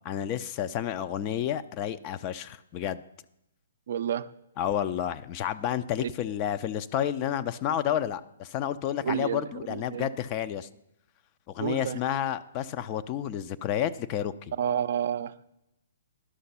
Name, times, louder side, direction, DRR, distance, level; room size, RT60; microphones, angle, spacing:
voice 1, 0.0-3.0 4.6-10.7 11.5-14.5, left 10 dB, 30° left, 0.4 m, -30 dB
voice 2, 3.9-4.3 6.0-6.1 9.0-10.1 11.6-12.0 14.5-15.5, right 9 dB, 60° right, 0.4 m, -30 dB
11.5 x 5.8 x 5.6 m
hypercardioid pair, 130°, 0 cm